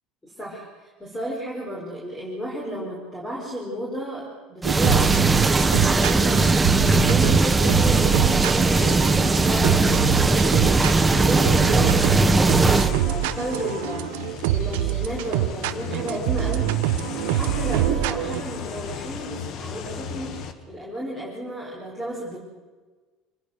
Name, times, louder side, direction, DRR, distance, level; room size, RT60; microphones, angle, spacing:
voice 1, 0.2-14.1 14.5-17.0 17.2-22.4, equal, 10° left, -4 dB, 4.8 m, -33 dB
sound 1, 4.6-12.9, right 3 dB, 10° right, 0.9 m, -19 dB
sound 2, 4.6-18.4, right 14 dB, 90° right, 1.0 m, -25 dB
sound 3, 8.5-20.5, left 6 dB, 45° left, 1.6 m, -35 dB
26.0 x 19.5 x 6.7 m, 1.3 s
cardioid pair, 155°, 0 cm